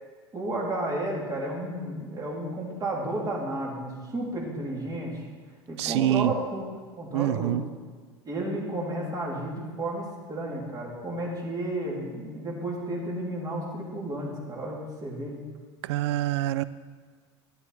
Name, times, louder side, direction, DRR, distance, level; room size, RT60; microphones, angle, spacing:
voice 1, 0.3-5.2 5.7-6.7 7.0-7.6 8.2-15.3, right 1 dB, 25° right, -3 dB, 3.0 m, -32 dB
voice 2, 5.8-6.3 7.1-7.6 15.8-16.6, right 13 dB, 70° right, 16 dB, 0.4 m, -25 dB
12.0 x 7.8 x 4.1 m, 1.5 s
hypercardioid pair, 95°, 15 cm